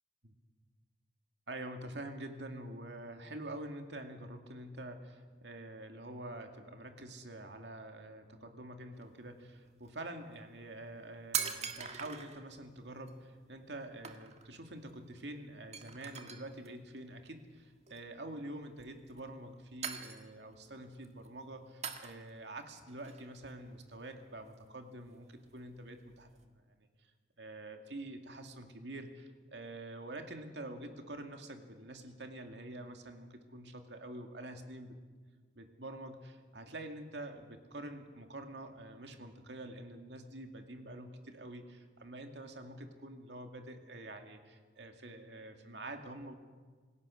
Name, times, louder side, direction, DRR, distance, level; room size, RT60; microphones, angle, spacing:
voice 1, 1.5-26.6 27.0-27.1 27.4-35.0 35.5-46.3, right 1 dB, 75° right, 5 dB, 2.3 m, -46 dB
sound 1, 9.0-9.1 9.6-9.9 10.6-10.7 10.9-12.4 13.1-13.2 13.6-13.8 14.0-14.6 14.8-14.9 15.2-15.3 15.7-16.7 17.8-18.2 18.8-19.5 19.8-20.6 20.9-21.3 21.8-22.5 22.9-24.2 24.5-26.4, right 7 dB, 40° right, 1.5 m, -42 dB
26.5 x 16.5 x 6.4 m, 1.5 s
head